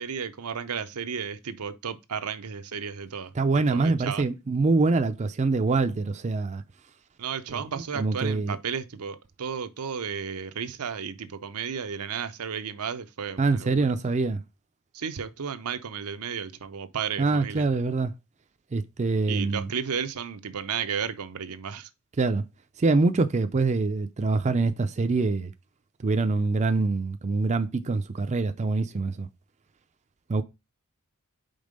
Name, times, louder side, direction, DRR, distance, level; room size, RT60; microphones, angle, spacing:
voice 1, 0.0-3.3 3.7-4.2 7.2-13.8 14.9-17.7 19.3-21.9, right 7 dB, 80° right, 0.7 m, -33 dB
voice 2, 3.4-6.6 7.5-7.6 8.0-8.6 13.4-14.4 17.2-18.1 18.7-19.7 22.2-22.4 22.8-25.5 26.0-29.3 30.3-30.4, right 3 dB, 30° right, 0.4 m, -25 dB
5.3 x 3.6 x 5.1 m
head